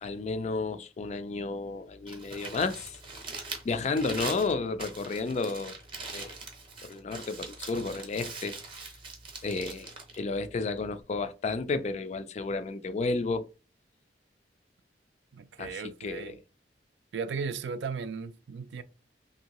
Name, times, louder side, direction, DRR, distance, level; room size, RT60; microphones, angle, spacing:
voice 1, 0.0-3.0 3.6-5.7 6.1-6.4 6.8-8.6 9.4-13.5 15.6-16.4, left 3 dB, 40° left, 0.3 m, -32 dB
Crumpling crinkling, 1.9-11.0, right 3 dB, 30° right, 0.7 m, -42 dB
voice 2, 15.3-16.4 17.1-18.8, right 5 dB, 75° right, 0.4 m, -36 dB
2.8 x 2.7 x 2.9 m
head